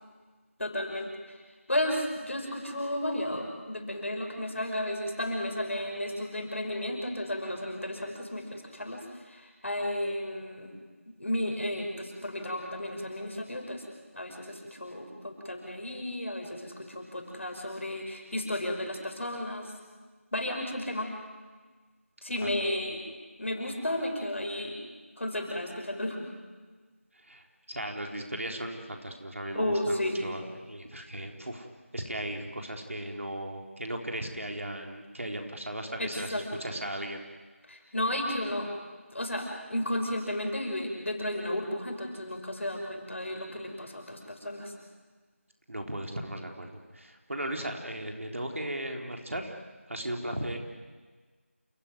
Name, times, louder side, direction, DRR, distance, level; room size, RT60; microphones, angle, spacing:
voice 1, 0.6-1.1 1.7-9.0 9.3-10.7 11.1-13.8 14.1-19.7 20.3-21.1 22.2-23.0 23.4-24.8 25.2-26.2 29.5-30.2 36.0-36.7 37.7-38.7 39.1-44.7, left 1 dB, 60° left, 3 dB, 6.1 m, -33 dB
voice 2, 27.1-31.7 31.9-37.3 45.7-49.6 49.9-50.6, right 1 dB, 65° right, 2 dB, 4.0 m, -37 dB
28.5 x 16.5 x 9.6 m, 1.4 s
figure-of-eight pair, 175°, 8 cm